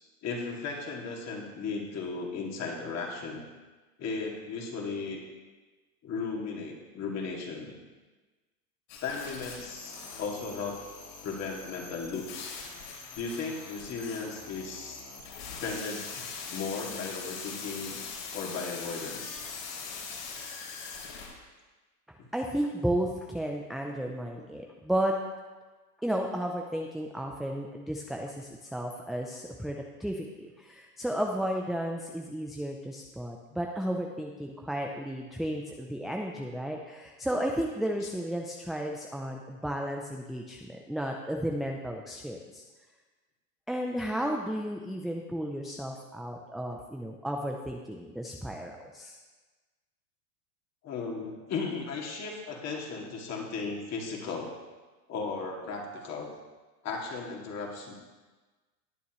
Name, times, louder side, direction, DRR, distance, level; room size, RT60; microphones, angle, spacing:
voice 1, 0.2-3.4 4.0-5.2 6.0-7.8 9.0-10.8 11.2-12.5 13.1-15.0 15.6-18.0 18.3-19.4 22.2-22.3 48.5-48.6 50.8-54.6 55.1-56.3 56.8-57.9, left 4 dB, 35° left, 0 dB, 2.4 m, -36 dB
sound 1, 8.9-21.3, left 5 dB, 55° left, 3.9 m, -42 dB
voice 2, 22.3-25.1 26.0-42.6 43.7-49.2, equal, ahead, 0 dB, 0.5 m, -33 dB
20.0 x 6.9 x 3.1 m, 1.3 s
hypercardioid pair, 115°, 46 cm